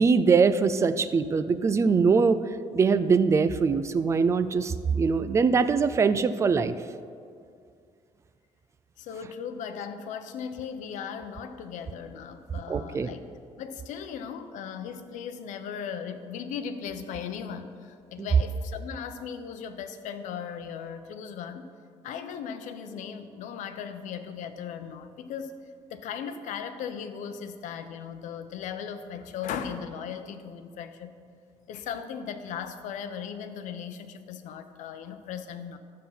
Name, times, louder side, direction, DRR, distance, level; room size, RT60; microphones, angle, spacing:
voice 1, 0.0-2.4 2.7-6.7 12.7-13.1 18.2-18.3, right 5 dB, 25° right, 12 dB, 0.4 m, -22 dB
voice 2, 9.0-13.2 13.6-21.7 22.0-25.6 25.9-31.1 31.7-35.8, left 7 dB, 85° left, 9 dB, 0.8 m, -37 dB
12.0 x 7.5 x 5.7 m, 2.3 s
cardioid pair, 165°, 13 cm